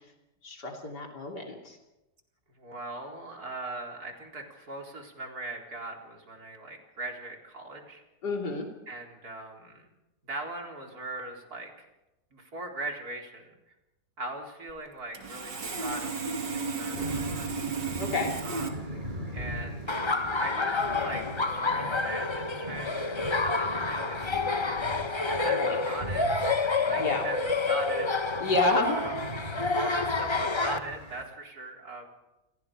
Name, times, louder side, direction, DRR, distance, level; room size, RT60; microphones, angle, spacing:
voice 1, 0.4-1.8 8.2-8.7 18.0-18.3 25.5-25.8 27.0-27.3 28.4-29.0, left 2 dB, 70° left, 1 dB, 3.7 m, -29 dB
voice 2, 2.6-8.0 8.9-9.9 10.3-11.9 12.3-13.6 14.2-17.6 18.4-19.1 19.3-28.4 28.9-29.1 29.7-32.1, right 2 dB, 60° right, 1 dB, 4.6 m, -40 dB
Sawing, 14.7-14.8 15.1-18.7, right 4 dB, 90° right, 3.2 m, -33 dB
sound 1, 16.9-31.2, equal, 25° right, 6.1 m, -40 dB
Laughter, 19.9-30.8, left 3 dB, 25° left, 0.7 m, -29 dB
29.5 x 22.5 x 5.0 m, 0.97 s
omnidirectional pair, 1.9 m